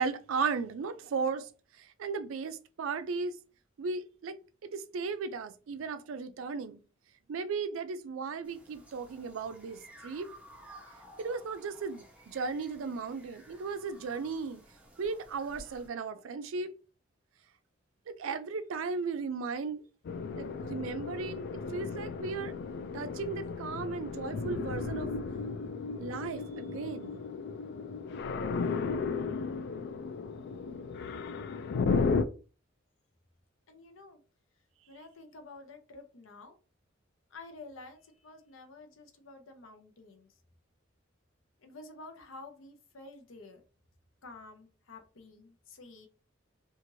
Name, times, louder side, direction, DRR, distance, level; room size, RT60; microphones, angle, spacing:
voice 1, 0.0-3.4 3.8-4.4 4.6-6.8 7.3-10.3 11.2-14.6 15.0-16.7 18.1-19.8 20.4-21.4 21.7-22.5 22.9-25.1 26.0-27.2, right 4 dB, 80° right, 0.4 m, -36 dB
sound 1, 8.4-15.9, right 1 dB, 5° right, 0.7 m, -55 dB
sound 2, 20.0-32.2, left 4 dB, 55° left, 0.3 m, -34 dB
voice 2, 33.7-34.2 34.9-36.6 37.3-40.3 41.6-43.6 44.2-46.1, left 3 dB, 80° left, 0.7 m, -50 dB
2.6 x 2.4 x 3.0 m
head